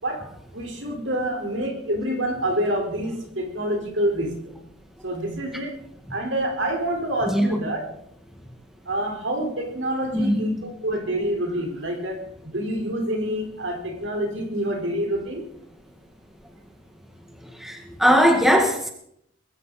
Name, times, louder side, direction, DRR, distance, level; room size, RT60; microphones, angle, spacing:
voice 1, 0.0-4.4 5.0-5.8 6.1-7.8 8.8-15.4, right 1 dB, 65° right, 2 dB, 4.6 m, -27 dB
voice 2, 7.3-7.6 10.1-10.4 17.4-18.9, equal, ahead, 2 dB, 1.7 m, -20 dB
21.0 x 16.0 x 4.3 m, 0.72 s
head